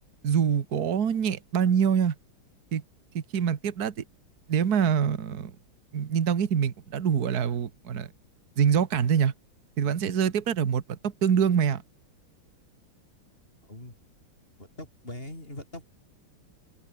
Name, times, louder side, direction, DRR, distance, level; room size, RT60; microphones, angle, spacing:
voice 1, 0.2-2.1 2.7-2.8 3.1-3.9 4.5-5.5 5.9-8.1 8.6-9.3 9.8-11.8, right 7 dB, 50° right, 1.9 m, -25 dB
voice 2, 14.8-15.9, left 1 dB, 25° left, 6.7 m, -41 dB
open air
omnidirectional pair, 2.3 m